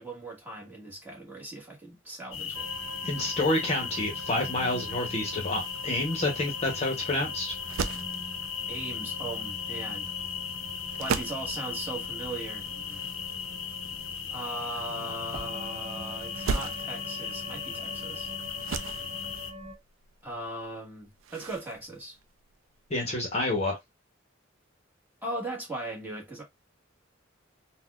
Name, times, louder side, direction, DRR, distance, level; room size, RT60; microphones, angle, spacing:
voice 1, 0.0-2.7 8.7-10.1 11.0-12.7 14.3-18.3 20.2-22.2 25.2-26.4, right 2 dB, 10° right, 1.2 m, -38 dB
sound 1, 2.3-19.5, left 7 dB, 70° left, 0.6 m, -37 dB
sound 2, 2.5-19.8, right 1 dB, 30° right, 1.1 m, -45 dB
voice 2, 3.0-7.5 22.9-23.8, left 2 dB, 30° left, 0.8 m, -28 dB
sound 3, 5.5-23.0, right 5 dB, 75° right, 0.4 m, -40 dB
4.0 x 2.2 x 2.3 m
head